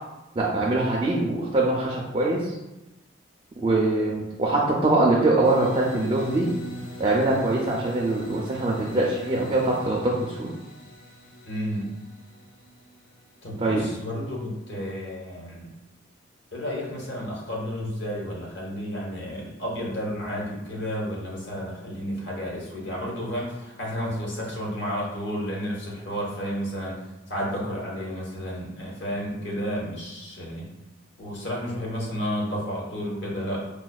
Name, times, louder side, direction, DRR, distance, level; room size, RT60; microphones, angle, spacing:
voice 1, 0.4-2.6 3.6-6.5 7.0-10.5 13.6-13.9, right 2 dB, 25° right, -3 dB, 0.3 m, -23 dB
sound 1, 5.4-14.2, equal, 45° left, 0.5 m, -42 dB
voice 2, 11.5-12.0 13.4-15.7 16.5-27.0 27.3-30.7 31.2-33.7, equal, 65° left, -3 dB, 1.0 m, -31 dB
4.9 x 2.2 x 2.3 m, 0.98 s
head